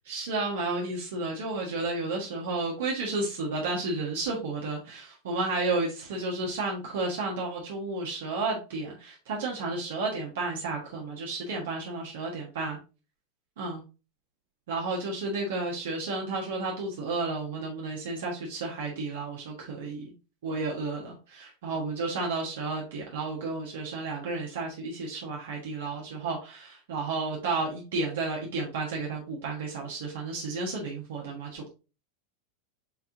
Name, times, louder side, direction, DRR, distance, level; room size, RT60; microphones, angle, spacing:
voice 1, 0.0-12.8 13.6-13.8 14.7-20.1 20.4-31.7, right 3 dB, 75° right, -1 dB, 1.3 m, -32 dB
6.5 x 2.9 x 2.6 m, 0.32 s
hypercardioid pair, 115°, 0 cm